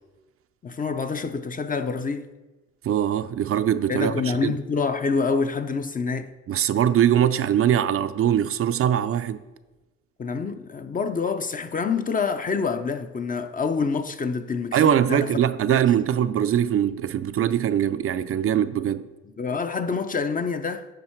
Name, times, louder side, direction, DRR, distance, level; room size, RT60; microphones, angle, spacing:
voice 1, 0.6-2.3 3.9-6.3 10.2-15.3 15.7-15.9 19.4-20.9, left 5 dB, 30° left, 0.5 m, -27 dB
voice 2, 2.8-4.6 6.5-9.4 14.7-19.1, right 10 dB, 50° right, 0.4 m, -22 dB
9.9 x 5.6 x 4.5 m
cardioid pair, 90°, 30 cm